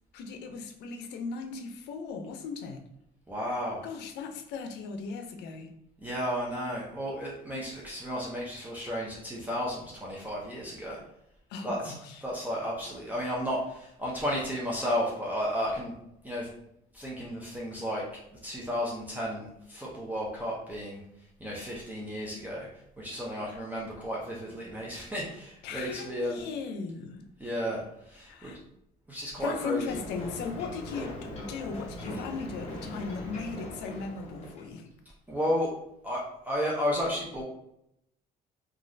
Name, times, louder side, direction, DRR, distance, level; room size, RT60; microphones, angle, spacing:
voice 1, 0.1-2.8 3.8-5.7 11.5-12.2 23.3-23.4 25.6-27.3 28.3-28.6 29.4-34.9, left 5 dB, 85° left, 6 dB, 0.5 m, -37 dB
voice 2, 3.3-3.8 6.0-11.0 11.6-11.9 12.2-15.9 16.2-16.5 16.9-18.1 18.4-21.0 21.4-22.7 23.0-26.4 27.4-27.8 28.1-28.5 29.1-29.9 35.3-35.7 36.0-37.4, equal, 10° right, -5 dB, 0.6 m, -33 dB
Ocean, 29.9-34.8, left 1 dB, 40° left, 1.0 m, -41 dB
3.0 x 2.4 x 2.6 m, 0.78 s
cardioid pair, 110°, 17 cm